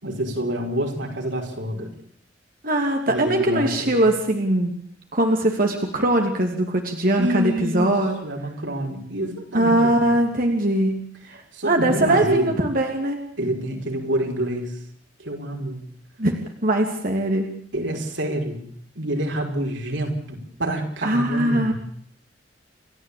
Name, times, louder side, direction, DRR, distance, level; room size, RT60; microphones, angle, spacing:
voice 1, 0.0-1.9 3.1-4.0 7.2-10.1 11.5-12.6 13.4-14.7 15.2-15.8 17.7-18.6 19.0-21.7, right 1 dB, 90° right, 2 dB, 5.6 m, -27 dB
voice 2, 2.6-4.7 5.1-8.2 9.5-11.0 11.6-13.2 16.2-17.5 21.0-21.7, right 1 dB, 50° right, 2 dB, 2.8 m, -21 dB
29.5 x 14.0 x 8.7 m, 0.62 s
head